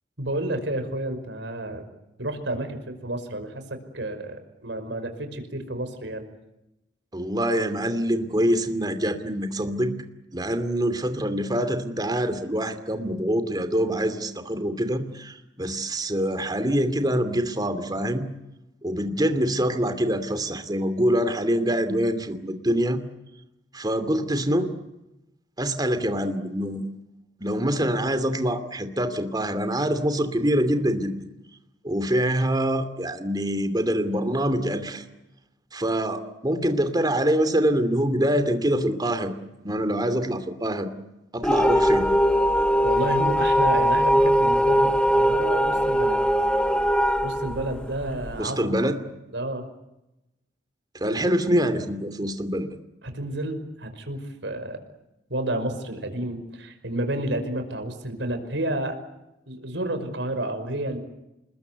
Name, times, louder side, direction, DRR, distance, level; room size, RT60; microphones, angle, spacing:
voice 1, 0.2-1.8 2.2-3.6 3.9-6.3 42.8-44.9 45.2-46.2 47.2-48.9 49.3-49.6 53.0-54.8 55.3-59.0 59.5-61.0, right 1 dB, 70° right, 7 dB, 5.3 m, -30 dB
voice 2, 7.1-9.9 10.3-18.2 18.8-23.0 23.7-24.7 25.6-26.9 27.4-31.1 31.8-35.0 35.7-39.4 39.6-40.9 41.3-42.1 48.4-49.0 50.9-52.7, equal, 20° right, 10 dB, 2.6 m, -25 dB
sound 1, 41.4-48.3, equal, 5° left, 0.9 m, -21 dB
28.5 x 20.5 x 8.3 m, 0.92 s
head